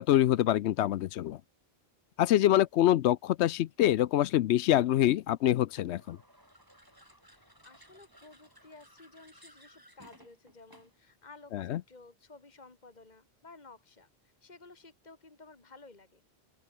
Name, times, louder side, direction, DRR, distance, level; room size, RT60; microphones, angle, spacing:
voice 1, 0.0-1.4 2.2-6.2 11.5-11.8, left 12 dB, 80° left, 0.9 m, -25 dB
sound 1, 5.7-11.1, equal, 20° right, 6.4 m, -59 dB
voice 2, 7.3-16.3, left 3 dB, 40° left, 2.5 m, -55 dB
open air
omnidirectional pair, 1.1 m